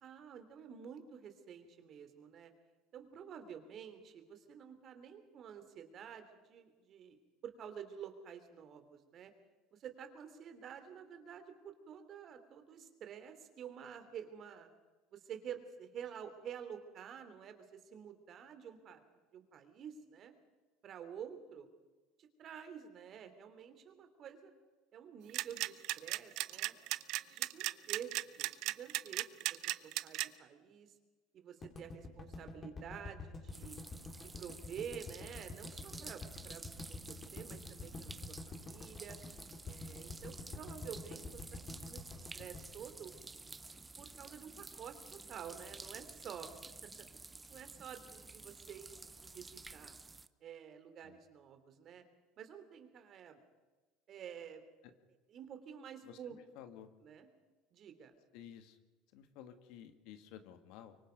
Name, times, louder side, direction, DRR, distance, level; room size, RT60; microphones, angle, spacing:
voice 1, 0.0-2.5 2.9-7.2 7.4-9.3 9.7-14.7 15.1-19.0 19.3-20.3 20.8-21.7 22.2-24.5 24.9-26.7 27.3-30.9 31.3-33.8 34.2-39.2 39.7-43.1 44.0-46.5 46.8-46.9 47.5-50.0 50.4-52.0 52.4-53.4 54.1-54.6 55.3-56.4 57.0-57.3 57.7-58.1, right 8 dB, 45° right, 8 dB, 3.2 m, -50 dB
sound 1, 25.3-30.3, right 19 dB, 65° right, 0.7 m, -35 dB
sound 2, 31.6-43.8, left 3 dB, 30° left, 4.3 m, -47 dB
sound 3, 33.5-50.3, right 3 dB, 15° right, 0.8 m, -52 dB
voice 2, 56.0-56.9 58.3-58.8 59.1-61.0, left 10 dB, 70° left, 8 dB, 2.1 m, -53 dB
24.5 x 24.0 x 5.3 m, 1.2 s
supercardioid pair, 95°, 0 cm